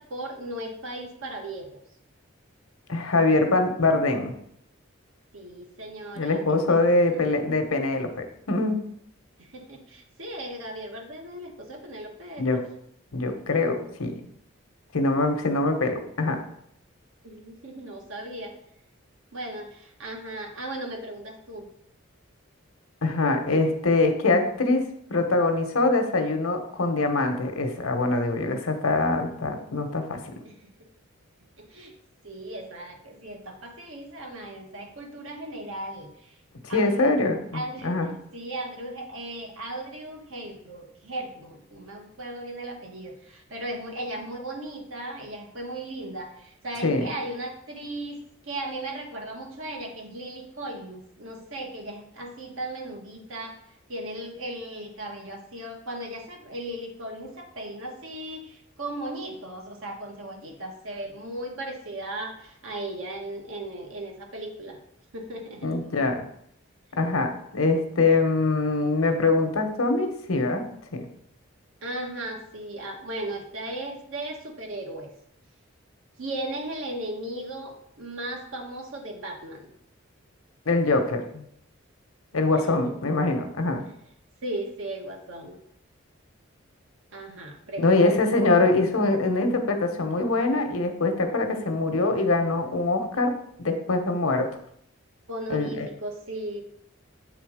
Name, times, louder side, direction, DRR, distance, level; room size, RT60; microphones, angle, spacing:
voice 1, 0.0-1.8 5.3-7.2 9.4-12.6 17.2-18.5 19.3-21.7 30.4-30.7 31.6-31.9 32.2-36.3 36.7-37.2 37.5-53.6 53.9-64.8 65.1-65.8 71.8-75.1 76.2-79.7 82.5-82.9 84.4-85.6 87.1-88.0 95.3-96.6, right 1 dB, 70° right, 2 dB, 1.3 m, -37 dB
voice 2, 2.9-4.3 6.2-8.8 12.4-12.6 13.1-14.1 14.9-16.4 23.0-30.2 36.7-38.1 46.8-47.1 65.6-66.2 66.9-70.6 70.9-71.0 80.7-81.4 82.3-83.8 87.8-93.3 93.6-94.5 95.5-95.9, left 3 dB, 80° left, 6 dB, 1.0 m, -23 dB
8.2 x 3.7 x 4.9 m, 0.71 s
head